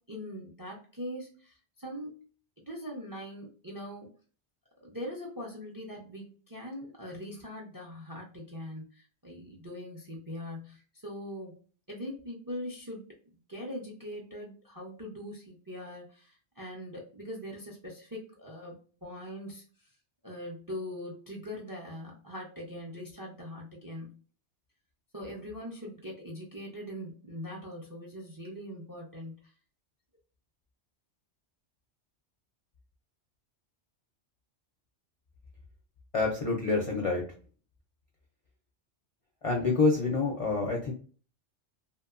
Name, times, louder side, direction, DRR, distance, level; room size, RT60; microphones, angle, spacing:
voice 1, 0.1-2.2 2.7-4.1 4.8-11.6 11.9-13.0 13.5-19.6 20.2-24.2 25.1-29.5, equal, 30° right, -1 dB, 0.4 m, -41 dB
voice 2, 36.1-37.2 39.4-40.9, left 3 dB, 55° left, -1 dB, 0.4 m, -27 dB
2.8 x 2.1 x 2.4 m, 0.40 s
omnidirectional pair, 1.2 m